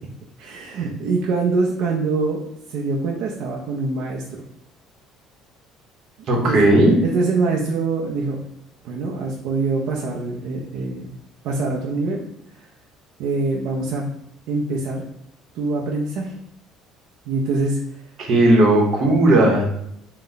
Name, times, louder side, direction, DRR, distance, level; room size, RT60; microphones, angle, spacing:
voice 1, 0.4-4.4 6.4-6.7 7.0-8.4 8.8-11.1 11.4-12.2 12.6-12.7 13.2-14.0 14.5-15.0 15.5-16.3 17.3-17.8, right 3 dB, 70° right, -2 dB, 0.5 m, -24 dB
voice 2, 6.3-6.9 18.2-19.6, right 1 dB, 45° right, 0 dB, 0.9 m, -15 dB
3.9 x 2.2 x 3.9 m, 0.77 s
cardioid pair, 150°, 0 cm